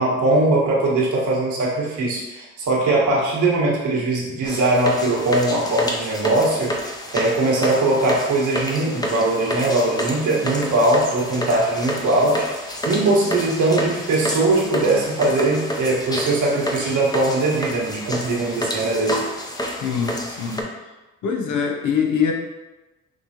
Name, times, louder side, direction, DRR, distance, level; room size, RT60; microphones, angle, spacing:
voice 1, 0.0-19.2, right 2 dB, 80° right, -5 dB, 1.6 m, -20 dB
sound 1, 4.4-20.6, equal, 15° left, 0.7 m, -29 dB
voice 2, 19.8-20.7 21.2-22.3, left 6 dB, 80° left, 2 dB, 0.9 m, -23 dB
5.8 x 3.0 x 2.9 m, 1.1 s
cardioid pair, 90°, 30 cm